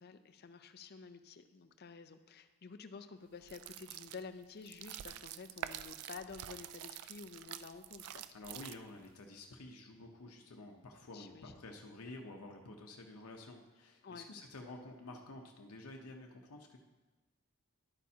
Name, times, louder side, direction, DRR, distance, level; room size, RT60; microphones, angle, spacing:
voice 1, 0.0-8.2 11.1-11.6 14.0-14.3, left 5 dB, 45° left, 9 dB, 0.5 m, -51 dB
sound 1, 3.4-9.1, right 11 dB, 80° right, 0.3 m, -47 dB
voice 2, 8.3-16.8, left 2 dB, 85° left, 2 dB, 0.8 m, -50 dB
10.5 x 8.5 x 2.8 m, 1.2 s
head